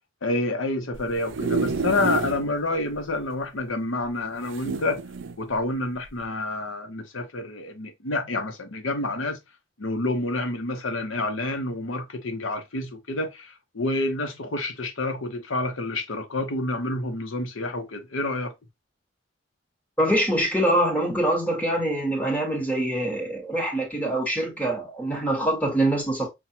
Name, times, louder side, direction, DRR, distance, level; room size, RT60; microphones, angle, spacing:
voice 1, 0.2-5.0 5.4-9.4 9.8-18.5, left 2 dB, 90° left, 0.9 m, -28 dB
sound 1, 0.9-2.5 2.9-3.0 3.2-3.3 4.4-5.4 6.0-6.2, right 4 dB, 70° right, 0.5 m, -29 dB
voice 2, 20.0-26.3, right 1 dB, 10° left, 1.3 m, -24 dB
5.8 x 2.4 x 2.8 m
head